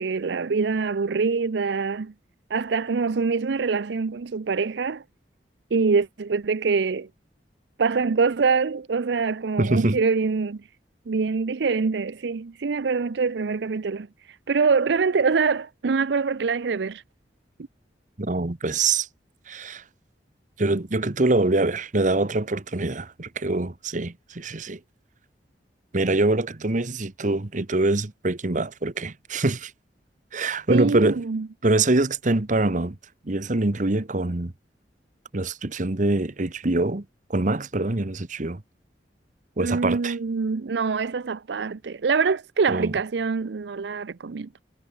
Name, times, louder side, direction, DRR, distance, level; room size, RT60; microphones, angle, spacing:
voice 1, 0.0-2.1 2.5-5.0 5.7-7.1 7.8-10.7 11.1-17.0 30.7-31.5 39.6-44.5, right 4 dB, 75° right, 0.5 m, -24 dB
voice 2, 9.6-10.0 18.2-19.1 19.5-19.8 20.6-24.8 25.9-29.7 30.3-31.2 31.6-33.0 33.2-34.5 35.3-37.0 37.3-38.6 39.6-40.2 42.7-42.9, right 2 dB, 45° right, 1.2 m, -24 dB
head